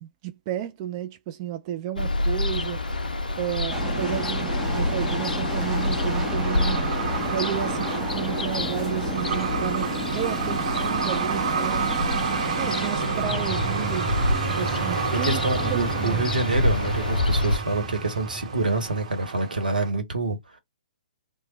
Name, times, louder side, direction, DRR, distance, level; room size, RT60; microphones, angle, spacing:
voice 1, 0.0-2.8 3.4-6.9 7.3-11.9 12.5-14.1 14.4-16.3, right 11 dB, 30° right, 0.3 m, -32 dB
Ocean, 2.0-17.6, left 2 dB, 75° left, 0.4 m, -28 dB
Truck, 2.5-19.9, right 6 dB, 50° right, 1.0 m, -32 dB
sound 1, 3.7-19.4, right 2 dB, 10° right, 0.8 m, -32 dB
voice 2, 15.1-20.6, right 2 dB, 75° right, 1.0 m, -27 dB
3.1 x 2.2 x 3.1 m
figure-of-eight pair, 120°, 5 cm